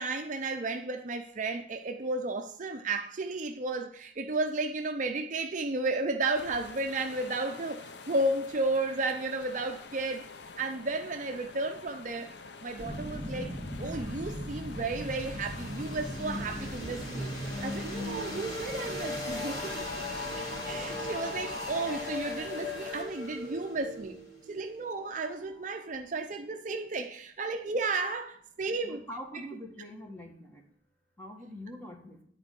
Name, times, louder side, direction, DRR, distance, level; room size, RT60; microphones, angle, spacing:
voice 1, 0.0-10.3 10.6-12.3 12.6-13.5 13.8-19.9 20.3-24.2 24.5-29.0, right 2 dB, 40° right, 0.5 m, -33 dB
sound 1, 6.3-23.0, left 4 dB, 65° left, 0.7 m, -47 dB
sound 2, 12.8-25.6, left 1 dB, 25° left, 2.9 m, -37 dB
voice 2, 28.8-30.6 31.2-32.2, equal, 10° left, 1.6 m, -44 dB
10.5 x 4.5 x 7.5 m
head